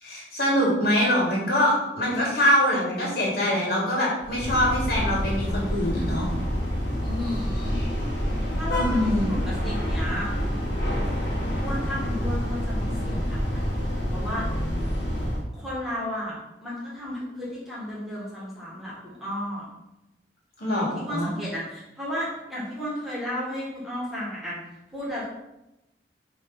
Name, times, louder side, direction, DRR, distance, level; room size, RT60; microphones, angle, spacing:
voice 1, 0.0-6.3 8.7-9.4 20.6-21.3, equal, 55° left, -5 dB, 2.6 m, -24 dB
sound 1, 4.2-15.4, equal, 75° left, 1.5 m, -27 dB
voice 2, 7.0-7.8 8.5-10.3 11.6-14.7 15.5-16.4 16.6-19.7 20.7-24.6 24.9-25.3, left 1 dB, ahead, -7 dB, 1.9 m, -33 dB
8.9 x 3.4 x 4.1 m, 0.93 s
head